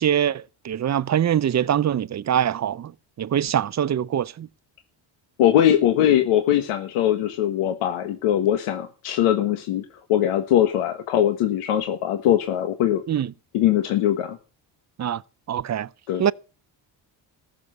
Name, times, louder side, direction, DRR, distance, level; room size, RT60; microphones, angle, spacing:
voice 1, 0.0-2.9 3.2-4.5 13.1-13.3 15.0-15.2 15.5-15.9 16.2-16.3, right 9 dB, 35° right, 0.6 m, -23 dB
voice 2, 5.4-13.0 13.5-14.4 16.1-16.2, left 11 dB, 85° left, 1.6 m, -21 dB
14.5 x 6.9 x 8.1 m
supercardioid pair, 75°, 50 cm